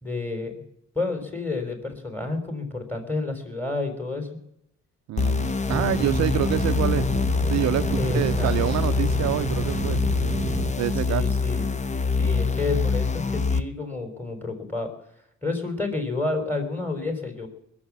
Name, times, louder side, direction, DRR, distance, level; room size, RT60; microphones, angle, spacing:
voice 1, 0.0-0.5 1.0-4.3 8.0-8.5 11.0-11.6 12.2-14.9 15.4-17.5, left 3 dB, 5° left, 5 dB, 3.8 m, -30 dB
voice 2, 5.1-7.1 7.5-7.8 8.1-10.0 10.8-11.2, right 13 dB, 65° right, 12 dB, 0.5 m, -26 dB
sound 1, 5.2-13.6, left 4 dB, 25° left, 0.7 m, -25 dB
sound 2, 5.7-10.7, right 6 dB, 25° right, 0.9 m, -31 dB
21.0 x 7.2 x 7.3 m, 0.77 s
cardioid pair, 90°, 30 cm